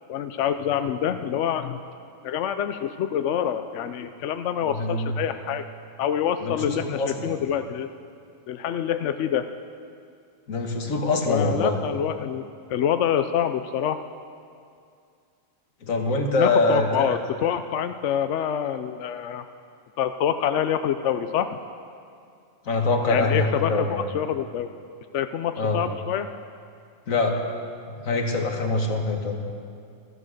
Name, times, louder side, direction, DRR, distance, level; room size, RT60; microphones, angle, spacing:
voice 1, 0.1-1.8 2.2-5.6 6.0-7.9 8.5-9.5 11.3-14.0 16.4-19.4 20.0-21.6 23.1-24.7 25.1-26.3, left 9 dB, 70° left, 9 dB, 0.9 m, -26 dB
voice 2, 4.7-5.2 6.4-7.3 10.5-11.7 15.8-17.2 22.7-24.0 25.6-25.8 27.1-27.4 27.9-29.4, left 2 dB, 85° left, 3 dB, 1.8 m, -24 dB
14.5 x 12.5 x 6.5 m, 2.4 s
omnidirectional pair, 1.4 m